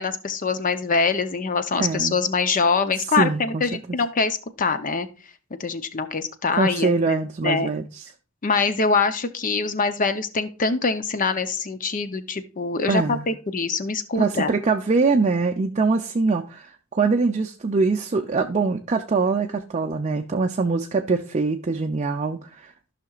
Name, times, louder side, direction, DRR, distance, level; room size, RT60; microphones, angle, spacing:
voice 1, 0.0-5.1 5.6-7.7 8.4-14.5, left 4 dB, 40° left, 0.6 m, -24 dB
voice 2, 1.8-2.2 3.2-4.0 6.5-8.1 12.9-13.3 14.2-22.7, right 4 dB, 35° right, 0.5 m, -23 dB
14.5 x 5.8 x 2.4 m
head